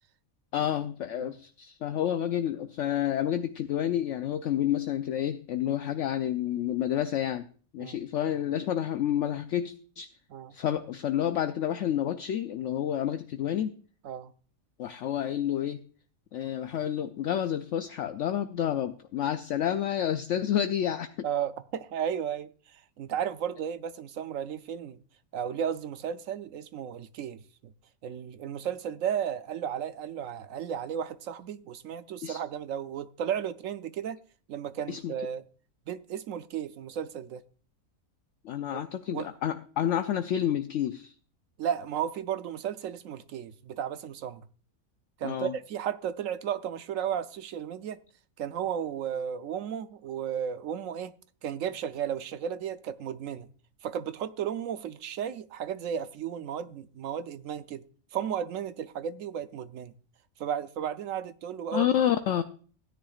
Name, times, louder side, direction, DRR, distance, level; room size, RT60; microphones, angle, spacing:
voice 1, 0.5-7.4 7.7-10.1 10.5-13.7 14.8-15.8 16.3-21.1 32.2-32.4 34.9-35.1 38.4-41.1 45.2-45.5 61.7-62.4, left 10 dB, 65° left, 0.9 m, -29 dB
voice 2, 21.2-25.0 25.3-27.7 28.0-34.2 34.5-35.4 35.9-37.4 38.7-38.8 39.1-39.3 41.6-44.4 45.2-48.0 48.4-51.1 51.4-53.5 53.8-57.8 58.1-59.9 60.4-61.9, right 9 dB, 70° right, 1.0 m, -34 dB
16.0 x 10.0 x 2.4 m
omnidirectional pair, 1.5 m